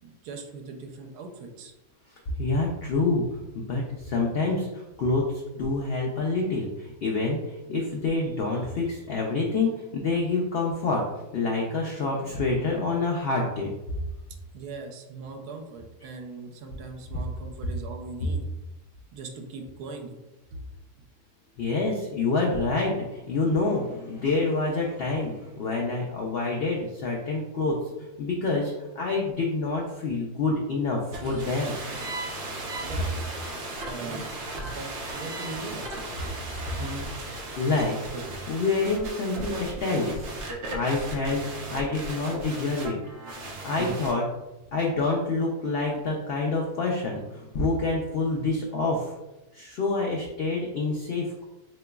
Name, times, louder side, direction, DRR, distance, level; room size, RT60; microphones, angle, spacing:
voice 1, 0.0-1.7 14.5-18.4 19.1-20.2 20.5-20.6 32.8-33.2 33.8-34.2 34.7-36.1, right 3 dB, 85° right, 2 dB, 1.1 m, -40 dB
voice 2, 2.4-3.2 3.5-11.0 11.3-13.7 21.6-31.8 36.7-37.1 37.6-38.0 38.5-40.3 40.7-43.0 43.6-44.3 44.7-49.1 49.5-51.4, left 3 dB, 85° left, -1 dB, 0.5 m, -27 dB
sound 1, 31.1-44.1, right 2 dB, 60° right, 0.8 m, -36 dB
3.8 x 3.0 x 2.2 m, 1.0 s
omnidirectional pair, 1.6 m